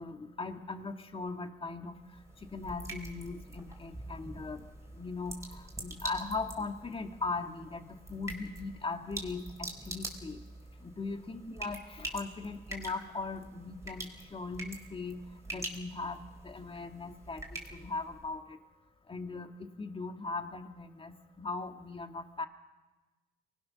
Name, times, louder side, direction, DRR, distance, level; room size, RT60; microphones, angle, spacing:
voice 1, 0.0-2.0 2.5-4.6 5.0-10.4 10.8-15.2 15.5-16.2 16.4-18.4 19.1-22.5, left 3 dB, 25° left, 6 dB, 1.9 m, -39 dB
sound 1, 1.9-18.3, right 1 dB, 15° right, 4.4 m, -45 dB
24.0 x 20.0 x 6.4 m, 1.2 s
cardioid pair, 90°, 20 cm